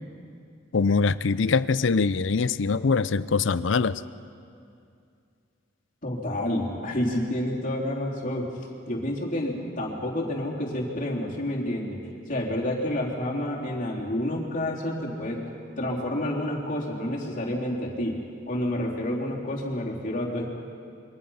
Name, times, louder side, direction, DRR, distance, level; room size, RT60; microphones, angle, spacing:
voice 1, 0.7-4.0, left 4 dB, 70° left, 16 dB, 0.6 m, -23 dB
voice 2, 6.0-8.5 8.9-15.4 15.8-18.2 18.5-20.5, left 1 dB, 45° left, -2 dB, 3.5 m, -29 dB
27.0 x 24.0 x 5.7 m, 2.4 s
head